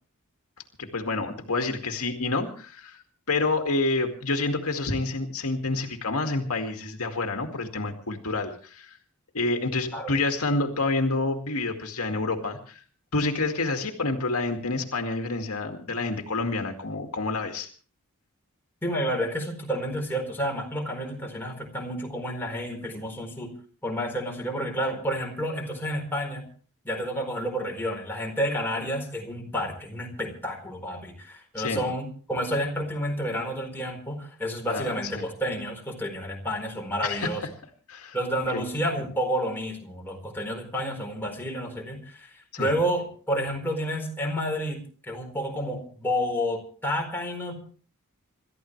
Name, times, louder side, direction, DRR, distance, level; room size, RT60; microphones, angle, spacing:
voice 1, 0.8-9.0 9.3-12.8 13.1-17.7 31.6-31.8 34.7-35.3 37.0-37.3 37.9-38.2 38.5-38.6 42.5-42.7, left 3 dB, 75° left, 4 dB, 2.2 m, -28 dB
voice 2, 18.8-23.5 23.8-26.4 26.8-37.4 38.1-47.5, equal, 10° left, 0 dB, 4.5 m, -30 dB
27.0 x 13.5 x 3.3 m, 0.41 s
head